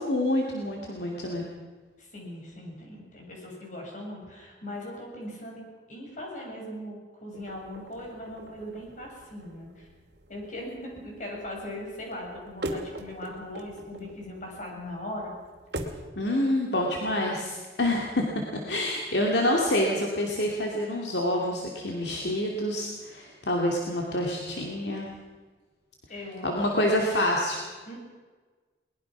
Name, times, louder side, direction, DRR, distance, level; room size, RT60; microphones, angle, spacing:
voice 1, 0.0-1.5 16.2-18.2 18.7-25.1 26.4-27.6, left 1 dB, 70° left, 0 dB, 2.7 m, -27 dB
voice 2, 2.0-5.6 5.9-9.9 10.3-15.3 26.1-26.9 27.8-28.0, left 1 dB, 45° left, 0 dB, 6.7 m, -39 dB
sound 1, 7.3-16.1, right 1 dB, 65° right, 2.5 m, -42 dB
22.0 x 20.5 x 6.1 m, 1.4 s
head